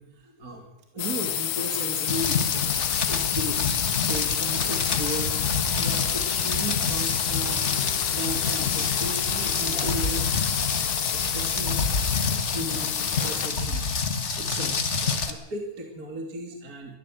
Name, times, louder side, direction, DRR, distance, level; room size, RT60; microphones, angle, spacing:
voice 1, 0.0-3.6 4.0-7.8 8.1-10.3 10.9-13.9 14.4-17.0, right 1 dB, 30° right, 2 dB, 2.9 m, -36 dB
sound 1, 1.0-13.7, left 11 dB, 75° left, 2.5 m, -29 dB
Rain, 2.1-15.3, left 5 dB, 40° left, 1.0 m, -27 dB
23.0 x 14.5 x 7.8 m, 0.79 s
omnidirectional pair, 3.5 m